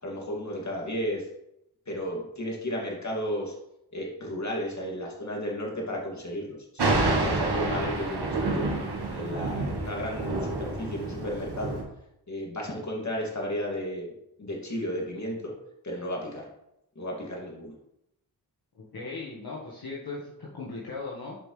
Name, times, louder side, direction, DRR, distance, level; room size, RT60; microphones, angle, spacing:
voice 1, 0.0-1.3 1.9-3.5 3.9-8.7 9.1-11.8 12.3-14.1 14.4-15.5 15.8-16.5 17.0-17.7, equal, 40° left, -2 dB, 2.6 m, -33 dB
Thunder, 6.8-11.8, right 2 dB, 70° right, 1.6 m, -28 dB
voice 2, 18.7-21.4, left 3 dB, 60° left, -6 dB, 1.7 m, -38 dB
7.8 x 5.3 x 3.4 m, 0.83 s
cardioid pair, 40°, 41 cm